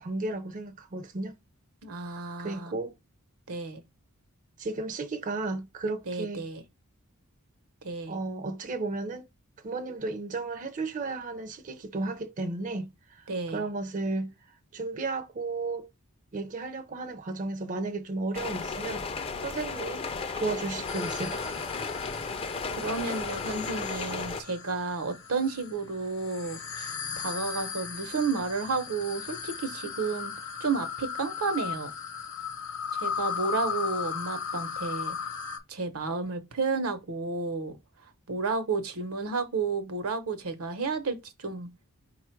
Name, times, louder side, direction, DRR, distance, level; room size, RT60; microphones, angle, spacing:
voice 1, 0.0-1.3 2.4-2.9 4.6-6.4 8.1-9.2 9.6-14.3 14.7-15.9 16.3-19.0 19.4-20.0 20.4-21.5, right 3 dB, 35° right, 0.5 m, -34 dB
voice 2, 1.8-2.8 3.5-3.8 6.1-6.6 7.8-8.2 13.3-13.7 22.7-30.3 30.6-31.9 32.9-35.2 35.7-37.8 38.3-41.7, right 4 dB, 80° right, 0.9 m, -32 dB
sound 1, 18.3-24.4, left 4 dB, 25° left, 0.4 m, -34 dB
sound 2, 20.9-35.6, left 7 dB, 55° left, 0.9 m, -37 dB
5.0 x 2.3 x 4.4 m
head